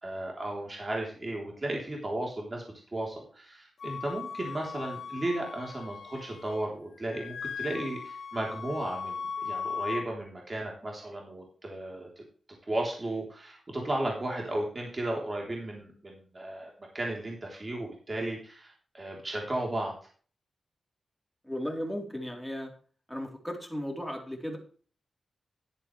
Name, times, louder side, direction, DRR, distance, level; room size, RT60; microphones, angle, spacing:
voice 1, 0.0-2.6 2.9-12.1 12.7-19.9, right 1 dB, 30° right, -1 dB, 3.4 m, -34 dB
Wind instrument woodwind instrument, 3.8-6.7 7.0-10.0, left 6 dB, 75° left, 0.9 m, -38 dB
voice 2, 21.4-22.7 23.1-24.6, equal, ahead, 0 dB, 3.7 m, -35 dB
11.5 x 11.0 x 3.3 m, 0.42 s
wide cardioid pair, 105°, 0 cm